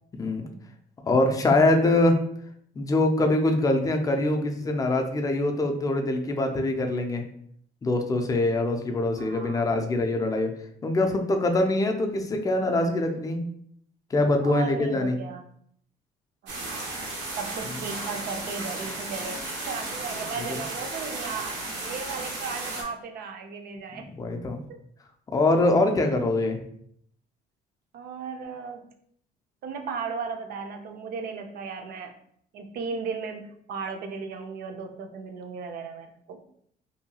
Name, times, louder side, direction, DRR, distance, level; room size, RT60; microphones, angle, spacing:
voice 1, 1.1-2.2 2.8-7.3 7.8-10.5 10.8-13.4 14.1-15.1 24.2-24.6 25.3-26.6, left 2 dB, 20° left, 4 dB, 0.4 m, -23 dB
voice 2, 9.2-9.8 14.4-15.4 16.4-16.9 17.4-24.1 27.9-28.9 29.6-32.1 32.5-36.4, right 5 dB, 65° right, 5 dB, 0.5 m, -36 dB
sound 1, 16.5-22.8, right 2 dB, 90° right, 0.8 m, -34 dB
2.7 x 2.2 x 2.8 m, 0.66 s
cardioid pair, 110°, 17 cm